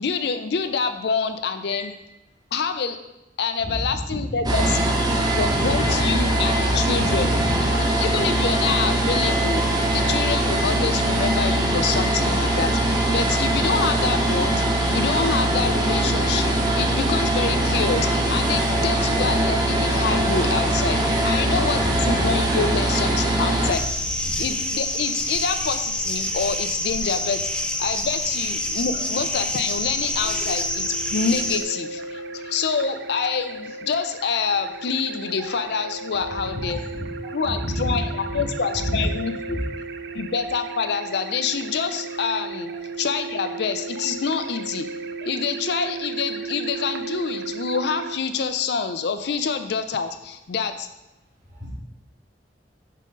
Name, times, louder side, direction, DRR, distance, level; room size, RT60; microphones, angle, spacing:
voice 1, 0.0-1.9 2.5-3.0 3.4-4.9 5.4-7.5 8.0-9.6 9.9-14.6 14.9-23.9 24.4-36.8 37.3-39.6 40.1-42.7 43.0-44.9 45.2-50.9, left 5 dB, 70° left, 9 dB, 0.5 m, -26 dB
voice 2, 3.6-4.4 5.1-6.1 7.3-7.5 21.7-21.9 24.2-24.3 35.4-35.5 36.6-38.0 38.3-38.4 38.7-39.0 39.5-39.6 40.1-40.2 42.7-42.8 51.5-51.7, equal, 45° right, -5 dB, 2.2 m, -30 dB
sound 1, 4.4-23.7, right 1 dB, 25° right, 0.9 m, -22 dB
sound 2, 23.7-31.6, left 1 dB, 5° left, 0.4 m, -27 dB
sound 3, 30.2-48.2, right 4 dB, 65° right, 0.4 m, -35 dB
5.7 x 3.7 x 5.2 m, 0.93 s
head